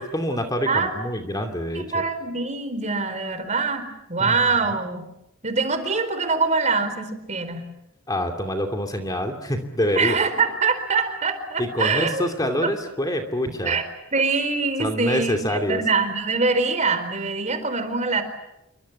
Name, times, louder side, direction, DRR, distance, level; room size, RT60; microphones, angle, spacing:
voice 1, 0.0-2.0 4.2-4.6 8.1-10.2 11.6-13.8 14.8-15.8, equal, 20° left, 5 dB, 2.7 m, -26 dB
voice 2, 0.7-1.0 1.7-5.0 5.4-7.6 10.0-12.3 12.6-12.7 13.4-13.9 14.1-18.2, right 4 dB, 35° right, 10 dB, 4.5 m, -24 dB
28.5 x 24.5 x 8.4 m, 0.85 s
head